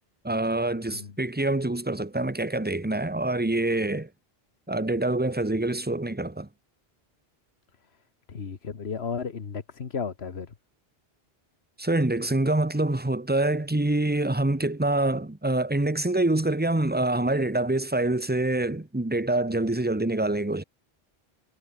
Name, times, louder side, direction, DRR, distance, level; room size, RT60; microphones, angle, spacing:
voice 1, 0.2-4.1 4.7-6.5 11.8-20.6, right 2 dB, 10° right, 1.1 m, -26 dB
voice 2, 8.3-10.5, left 6 dB, 80° left, 1.7 m, -33 dB
omnidirectional pair, 1.0 m